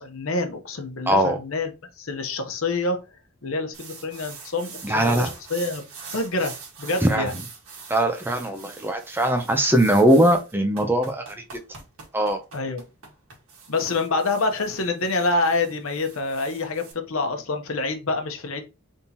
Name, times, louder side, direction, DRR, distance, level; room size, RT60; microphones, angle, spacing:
voice 1, 0.0-1.7 2.0-3.0 3.4-5.8 6.1-6.5 6.8-7.3 12.5-12.8 13.7-18.6, left 3 dB, 70° left, 0.9 m, -26 dB
voice 2, 1.1-1.4 4.8-5.3 7.0-7.3 7.9-11.6 12.1-12.4, right 1 dB, 10° right, 0.5 m, -21 dB
sound 1, 3.7-16.9, right 5 dB, 85° right, 1.5 m, -43 dB
3.6 x 2.8 x 4.0 m
head